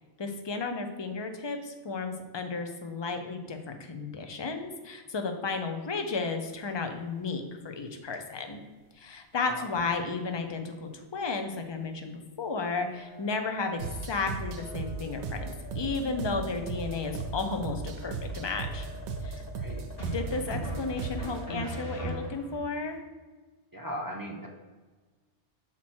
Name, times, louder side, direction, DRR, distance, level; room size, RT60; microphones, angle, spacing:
voice 1, 0.2-8.6 9.0-18.9 19.2-19.4 20.1-23.0, left 4 dB, 30° left, 5 dB, 0.5 m, -33 dB
sound 1, 6.5-7.0 7.2-7.3 7.8-8.2 8.8-8.9 9.8-9.9 10.3-10.4 11.6-11.7 12.8-22.4, left 3 dB, 55° left, 1.0 m, -48 dB
sound 2, 13.8-21.5, right 4 dB, 75° right, 0.9 m, -37 dB
sound 3, 17.3-17.9 20.0-22.6, right 2 dB, 85° left, 2.6 m, -38 dB
voice 2, 23.7-24.5, equal, 25° right, 0 dB, 0.6 m, -38 dB
6.0 x 4.5 x 4.3 m, 1.3 s
omnidirectional pair, 1.2 m